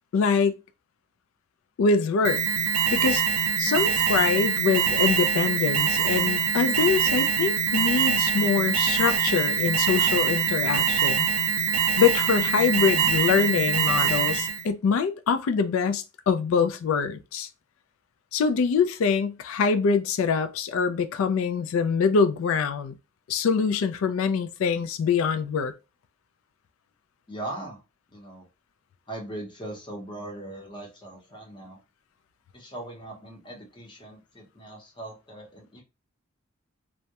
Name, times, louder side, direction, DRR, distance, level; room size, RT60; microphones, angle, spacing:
voice 1, 0.1-0.6 1.8-2.4 2.9-3.2 3.6-11.3 12.0-17.5 18.3-23.0 23.3-25.7, left 5 dB, 70° left, 0.3 m, -24 dB
Alarm, 2.2-14.6, right 7 dB, 75° right, 0.4 m, -24 dB
voice 2, 27.3-27.8 28.1-28.5 29.1-31.8 32.5-35.8, right 1 dB, 20° left, 0.7 m, -39 dB
2.2 x 2.0 x 2.8 m
head